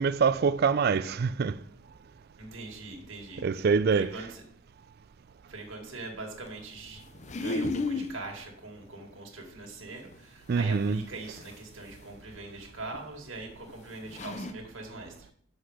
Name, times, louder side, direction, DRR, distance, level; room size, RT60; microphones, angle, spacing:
voice 1, 0.0-1.5 3.4-4.1 10.5-11.0, right 5 dB, 50° right, 0.3 m, -25 dB
voice 2, 2.4-4.4 5.5-15.3, right 2 dB, 70° right, 2.0 m, -42 dB
sound 1, 7.0-8.1 10.1-10.2 11.4-11.5 12.9-13.0 13.7-13.8 14.0-14.5, left 3 dB, 35° left, 0.5 m, -32 dB
7.8 x 6.4 x 4.8 m
head